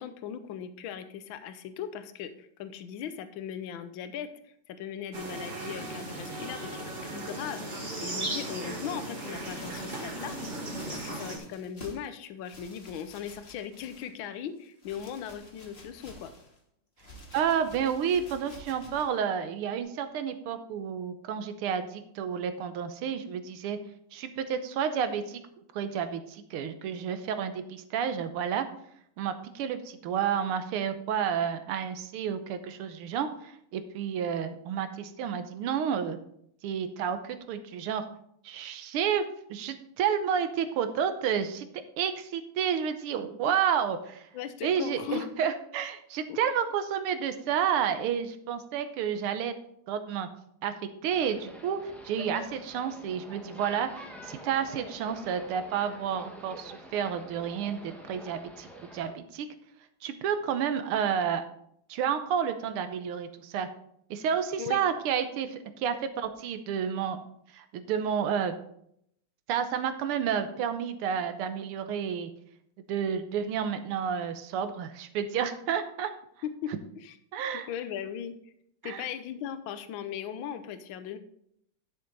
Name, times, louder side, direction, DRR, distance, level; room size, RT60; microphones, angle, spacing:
voice 1, 0.0-4.3 4.7-10.4 10.9-16.3 44.3-45.3 46.3-46.4 64.6-64.8 76.4-77.2 77.7-78.3 78.8-81.2, left 9 dB, 70° left, 11 dB, 1.5 m, -38 dB
sound 1, 5.1-11.4, right 2 dB, 35° right, 2.2 m, -37 dB
sound 2, 9.3-12.1 12.4-14.3 14.6-16.6 17.0-19.2 19.8-19.9, left 1 dB, 30° left, 1.9 m, -51 dB
voice 2, 17.3-23.8 24.1-25.4 25.7-28.7 29.2-36.2 36.6-38.0 38.4-39.2 39.5-41.7 42.0-44.3 44.6-49.5 49.9-50.3 50.6-50.7 51.0-58.7 58.9-59.5 60.0-61.4 61.9-63.7 64.1-67.2 67.5-68.5 69.5-72.3 72.9-76.1 77.3-77.7 78.8-79.1, right 8 dB, 90° right, 9 dB, 1.8 m, -30 dB
sound 3, 51.1-59.1, equal, ahead, 1.0 m, -47 dB
11.0 x 6.6 x 4.0 m, 0.72 s
omnidirectional pair, 2.3 m